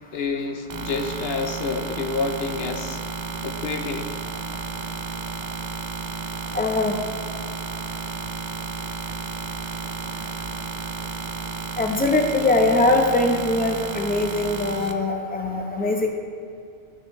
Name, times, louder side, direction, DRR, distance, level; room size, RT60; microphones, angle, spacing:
voice 1, 0.1-3.0 3.4-4.1, left 4 dB, 55° left, 5 dB, 0.9 m, -28 dB
sound 1, 0.7-14.9, right 4 dB, 55° right, 0.5 m, -32 dB
voice 2, 6.5-6.9 11.8-16.1, left 2 dB, 10° left, 1 dB, 0.8 m, -21 dB
13.5 x 6.6 x 3.2 m, 2.5 s
omnidirectional pair, 1.3 m